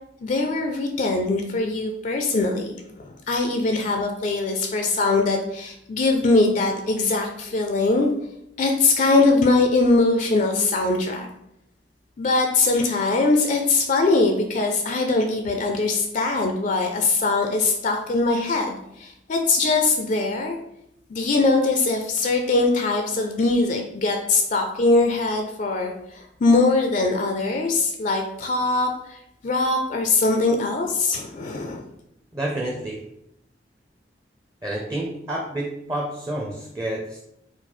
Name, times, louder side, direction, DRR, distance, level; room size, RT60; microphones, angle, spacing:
voice 1, 0.2-8.1 8.6-11.3 12.2-20.6 21.1-29.2 29.4-31.8, left 3 dB, 45° left, 4 dB, 0.4 m, -22 dB
voice 2, 32.3-33.0 34.6-37.2, right 1 dB, 20° right, -2 dB, 0.6 m, -29 dB
4.7 x 2.0 x 4.1 m, 0.78 s
head